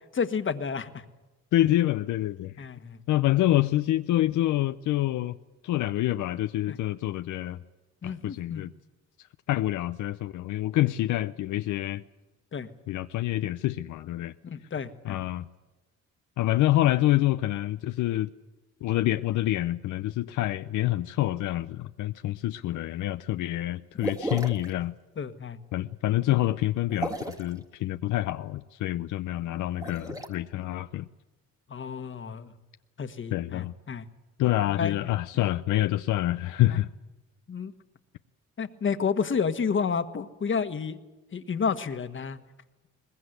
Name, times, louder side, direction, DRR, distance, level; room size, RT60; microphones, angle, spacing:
voice 1, 0.1-1.1 2.6-3.0 6.7-6.8 8.0-8.6 12.5-12.7 14.4-15.2 25.2-25.6 31.7-32.5 33.0-34.0 34.7-34.9 35.3-35.4 36.7-36.8 37.5-37.7 38.6-41.0 41.3-42.4, left 6 dB, 40° left, 10 dB, 1.5 m, -30 dB
voice 2, 1.5-2.5 3.1-5.4 5.6-7.6 8.0-8.7 9.5-12.0 12.9-14.3 15.0-15.5 16.4-18.3 18.8-24.9 25.7-31.0 33.3-33.7 34.4-36.9, left 15 dB, 80° left, 10 dB, 0.7 m, -27 dB
sound 1, 24.0-24.7 26.9-27.5 29.7-30.3, right 2 dB, 10° right, 1.9 m, -33 dB
21.5 x 20.0 x 8.0 m, 1.1 s
cardioid pair, 90°, 30 cm